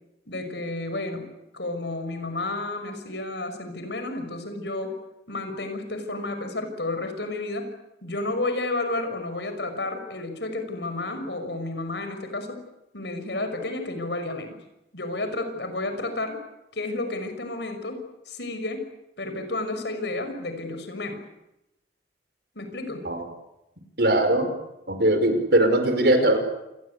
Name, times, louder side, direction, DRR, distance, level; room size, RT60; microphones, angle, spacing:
voice 1, 0.3-5.0 5.3-7.7 8.0-12.6 12.9-14.6 14.9-16.4 16.7-18.0 18.3-18.9 19.2-21.2 22.5-23.1, left 2 dB, 70° left, 7 dB, 5.9 m, -31 dB
voice 2, 24.0-24.5 24.9-26.4, right 1 dB, 60° right, 7 dB, 5.5 m, -20 dB
28.0 x 22.0 x 8.4 m, 0.90 s
head